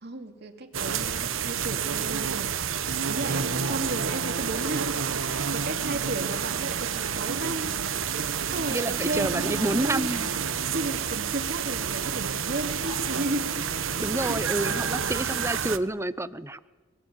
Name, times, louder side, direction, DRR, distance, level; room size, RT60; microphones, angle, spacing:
voice 1, 0.0-7.8 8.1-10.1 10.7-13.7 14.2-15.4, right 2 dB, 55° right, 5 dB, 2.6 m, -35 dB
sound 1, 0.7-15.8, right 7 dB, 90° right, 1.2 m, -29 dB
sound 2, 3.1-4.3 12.3-13.6, left 5 dB, 45° left, 3.0 m, -47 dB
voice 2, 8.7-10.4 14.0-16.6, right 1 dB, 15° right, 15 dB, 0.7 m, -29 dB
24.5 x 19.5 x 9.7 m, 1.3 s
head